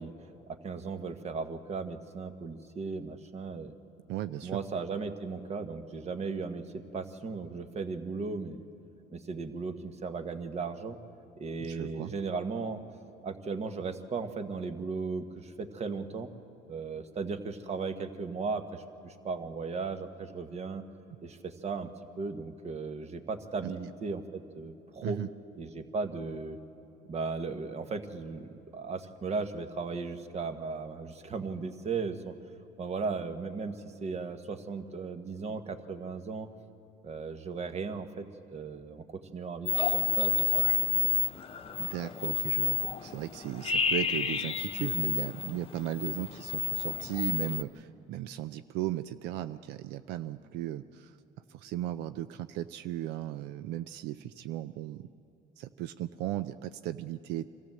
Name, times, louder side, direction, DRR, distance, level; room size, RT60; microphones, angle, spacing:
voice 1, 0.0-3.7 4.4-8.6 9.1-11.0 11.4-12.8 13.2-16.3 16.7-20.8 21.2-21.9 22.2-25.2 25.6-26.6 27.1-32.3 32.8-36.5 37.0-40.6, right 4 dB, 40° right, 8 dB, 1.4 m, -36 dB
voice 2, 4.1-4.6 11.6-12.1 23.6-23.7 25.0-25.3 41.8-51.1 51.5-55.1 55.6-57.5, right 13 dB, 90° right, 12 dB, 0.5 m, -36 dB
sound 1, 39.7-47.6, left 7 dB, 35° left, 0.9 m, -30 dB
24.5 x 15.0 x 7.6 m, 3.0 s
cardioid pair, 110°, 17 cm